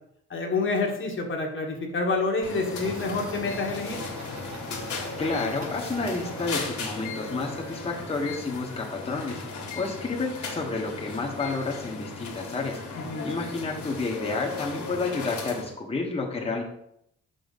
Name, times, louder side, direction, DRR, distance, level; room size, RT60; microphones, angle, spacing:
voice 1, 0.3-4.0 12.9-13.3, left 3 dB, 40° left, 2 dB, 1.3 m, -28 dB
sound 1, 2.4-15.7, left 4 dB, 70° left, 1.7 m, -36 dB
sound 2, 2.7-7.2, right 1 dB, 65° right, 1.5 m, -42 dB
voice 2, 5.2-9.4 9.7-12.8 13.2-16.6, left 3 dB, 20° left, -2 dB, 1.1 m, -30 dB
5.6 x 5.4 x 4.0 m, 0.77 s
cardioid pair, 90°, 30 cm